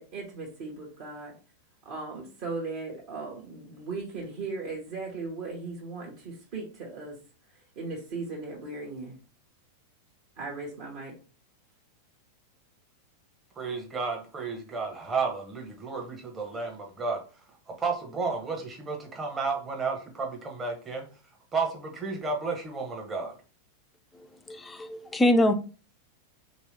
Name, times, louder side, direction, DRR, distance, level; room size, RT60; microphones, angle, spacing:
voice 1, 0.0-1.3 1.8-7.2 7.8-9.2 10.4-11.1, right 3 dB, 45° right, 1.1 m, -37 dB
voice 2, 13.6-17.2 17.7-21.1 21.5-23.3, right 4 dB, 20° right, 0.9 m, -32 dB
voice 3, 24.5-25.5, left 1 dB, 10° left, 0.4 m, -23 dB
3.1 x 3.0 x 3.2 m
figure-of-eight pair, 90°, 0 cm